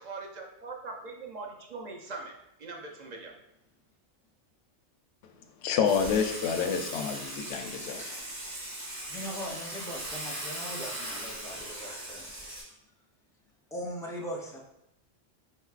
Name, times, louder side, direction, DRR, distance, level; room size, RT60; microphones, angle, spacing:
voice 1, 0.0-2.3 2.6-3.3, right 3 dB, 50° right, 1 dB, 0.6 m, -41 dB
voice 2, 5.6-8.2, left 7 dB, 75° left, 5 dB, 0.8 m, -28 dB
Water / Water tap faucet / Sink (filling or washing), 5.8-12.6, right 1 dB, 85° right, 2.1 m, -39 dB
voice 3, 9.0-12.3 13.7-14.6, equal, 5° left, -2 dB, 0.4 m, -39 dB
4.5 x 4.3 x 2.4 m, 0.82 s
omnidirectional pair, 1.2 m